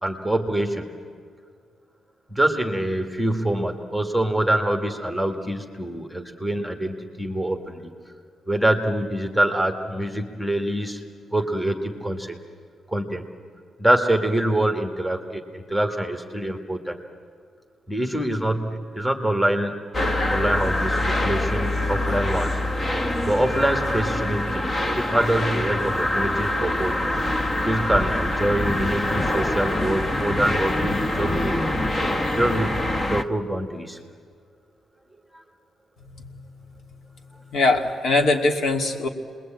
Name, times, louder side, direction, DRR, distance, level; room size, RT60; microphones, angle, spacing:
voice 1, 0.0-1.0 2.3-7.9 8.5-12.4 12.9-13.3 13.8-17.0 17.9-20.0 20.3-22.6 23.3-27.0 27.6-31.7 32.4-34.0 35.3-35.4, right 1 dB, ahead, 3 dB, 1.6 m, -25 dB
sound 1, 19.9-33.2, left 1 dB, 20° left, 1.0 m, -25 dB
voice 2, 37.5-39.1, left 2 dB, 55° left, 3 dB, 2.4 m, -21 dB
29.0 x 21.5 x 8.8 m, 2.2 s
wide cardioid pair, 170°, 0 cm